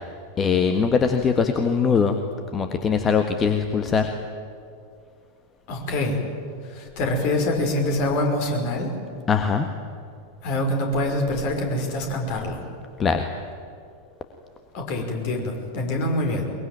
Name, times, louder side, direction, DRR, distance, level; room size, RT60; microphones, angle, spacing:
voice 1, 0.4-2.2 2.5-4.1 9.3-9.7 13.0-13.2, left 6 dB, 20° left, 6 dB, 1.6 m, -21 dB
voice 2, 5.7-6.2 6.7-8.9 10.4-12.6 14.7-16.5, left 1 dB, 45° left, 3 dB, 5.5 m, -25 dB
23.0 x 22.0 x 9.3 m, 2.3 s
figure-of-eight pair, 90°, 0 cm